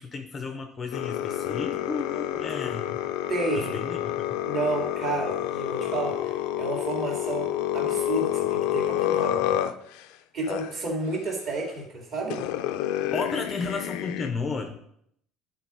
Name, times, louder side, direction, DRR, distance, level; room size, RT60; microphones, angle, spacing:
voice 1, 0.0-3.0 3.5-4.3 13.1-14.8, left 4 dB, 20° left, 6 dB, 0.6 m, -33 dB
sound 1, 0.9-10.1 10.5-10.7 11.7-11.8 12.3-14.3, left 12 dB, 80° left, 0.5 m, -29 dB
voice 2, 3.3-3.9 4.4-9.6 10.3-12.5, right 2 dB, 35° right, 0 dB, 2.2 m, -31 dB
11.0 x 4.0 x 4.8 m, 0.71 s
cardioid pair, 170°, 0 cm